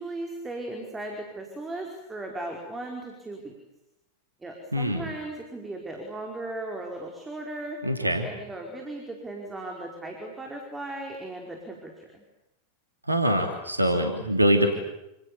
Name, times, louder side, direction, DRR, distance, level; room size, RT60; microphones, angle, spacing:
voice 1, 0.0-3.5 4.4-7.8 8.2-12.2, right 2 dB, 10° right, 1 dB, 5.0 m, -37 dB
voice 2, 4.7-5.1 7.8-8.3 13.1-14.7, right 1 dB, 85° right, 4 dB, 3.0 m, -23 dB
29.0 x 28.0 x 7.2 m, 0.90 s
figure-of-eight pair, 90°, 0 cm